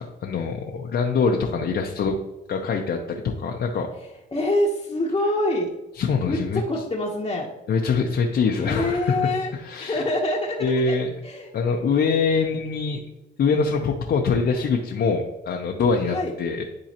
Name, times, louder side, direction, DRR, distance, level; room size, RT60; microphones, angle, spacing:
voice 1, 0.0-2.2 2.5-3.9 6.0-6.6 7.7-10.0 10.6-11.1 11.5-13.0 13.4-16.6, left 5 dB, 55° left, 1 dB, 0.7 m, -24 dB
voice 2, 4.3-5.7 6.3-7.5 8.5-9.5 9.8-11.0 11.2-11.5 16.1-16.3, left 1 dB, 25° left, -4 dB, 1.0 m, -25 dB
10.5 x 3.8 x 2.9 m, 1.0 s
cardioid pair, 90°, 20 cm